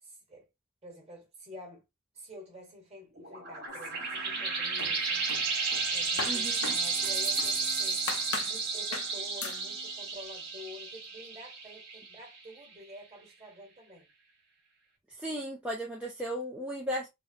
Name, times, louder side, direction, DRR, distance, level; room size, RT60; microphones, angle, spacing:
voice 1, 0.0-0.5 0.8-1.8 2.1-5.3 5.9-8.1 8.4-14.1, left 1 dB, 30° right, 1.3 m, -49 dB
sound 1, 3.2-12.4, right 4 dB, 50° right, 1.3 m, -32 dB
sound 2, 3.7-4.5 4.8-7.6 8.1-8.6 8.9-9.1 9.4-9.6, left 5 dB, 75° left, 0.6 m, -39 dB
voice 2, 6.3-6.7 15.2-17.1, equal, 5° right, 0.4 m, -35 dB
3.5 x 2.0 x 2.6 m
head